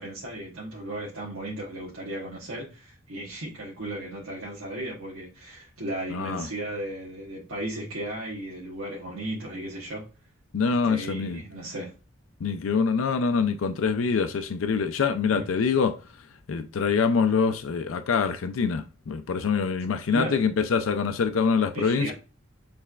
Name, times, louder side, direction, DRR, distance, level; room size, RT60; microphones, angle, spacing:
voice 1, 0.0-10.0 10.8-11.9 15.3-15.5 20.1-20.4 21.7-22.1, right 1 dB, 80° right, 1.1 m, -35 dB
voice 2, 6.1-6.5 10.5-11.4 12.4-22.1, left 5 dB, 70° left, 0.4 m, -25 dB
6.5 x 3.3 x 2.3 m
head